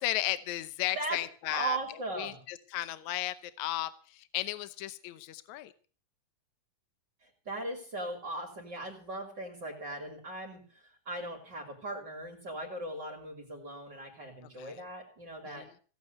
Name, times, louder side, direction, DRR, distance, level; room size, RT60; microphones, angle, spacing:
voice 1, 0.0-1.8 2.2-5.7 14.6-14.8 15.5-15.7, left 15 dB, 75° left, 14 dB, 2.2 m, -35 dB
voice 2, 1.5-2.4 7.2-15.7, right 2 dB, 35° right, 1 dB, 3.4 m, -38 dB
17.0 x 8.6 x 8.0 m, 0.40 s
omnidirectional pair, 3.4 m